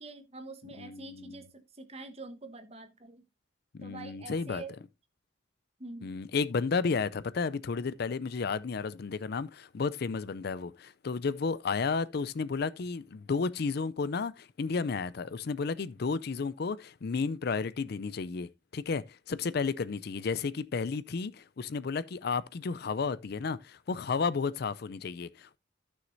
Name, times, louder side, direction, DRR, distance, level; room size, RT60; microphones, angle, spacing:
voice 1, 0.0-1.5 1.7-3.2 3.8-4.7 5.8-6.1, right 3 dB, 35° right, 1.2 m, -45 dB
voice 2, 0.8-1.4 3.7-4.6 6.0-25.6, left 4 dB, 55° left, 0.4 m, -32 dB
14.5 x 6.3 x 2.6 m
head